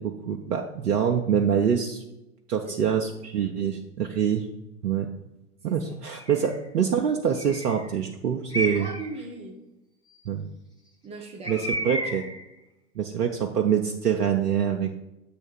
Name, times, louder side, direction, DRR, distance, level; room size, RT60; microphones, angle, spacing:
voice 1, 0.0-2.0 2.5-4.5 4.8-5.1 5.6-8.9 10.3-10.5 11.5-12.2 13.0-14.9, right 8 dB, 75° right, 3 dB, 0.7 m, -25 dB
voice 2, 2.6-3.0 3.7-3.8 5.6-5.9 8.7-9.6 11.0-11.7, right 3 dB, 15° right, 2 dB, 0.5 m, -40 dB
Bird, 6.1-6.6 7.3-7.9 8.5-9.1 11.4-12.4, equal, 10° left, 1.3 m, -32 dB
7.9 x 3.3 x 6.1 m, 0.92 s
figure-of-eight pair, 100°, 47 cm